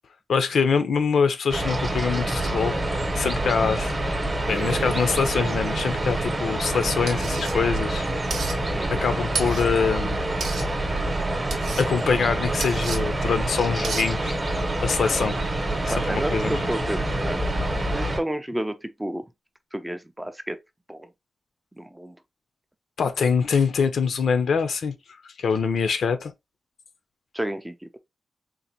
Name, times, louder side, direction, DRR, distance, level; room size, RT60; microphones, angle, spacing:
voice 1, 0.3-2.8 3.1-3.9 4.5-8.1 8.9-10.2 11.7-14.4 14.8-15.4 15.8-16.6 23.0-24.9 25.2-26.3, left 5 dB, 75° left, 0.5 m, -24 dB
sound 1, 1.5-18.2, right 1 dB, 25° right, 0.8 m, -26 dB
sound 2, 4.5-8.5, right 5 dB, 55° right, 0.6 m, -37 dB
sound 3, 7.1-7.5 8.3-8.6 9.3-9.7 10.4-10.7 11.5-11.9 12.6-13.0 13.8-14.1, right 4 dB, 90° right, 0.8 m, -31 dB
voice 2, 15.9-17.4 17.9-19.3 19.7-20.6 20.9-21.1 21.8-22.2 27.3-28.0, right 1 dB, 10° right, 0.3 m, -31 dB
3.9 x 2.5 x 2.8 m
wide cardioid pair, 150°, 0 cm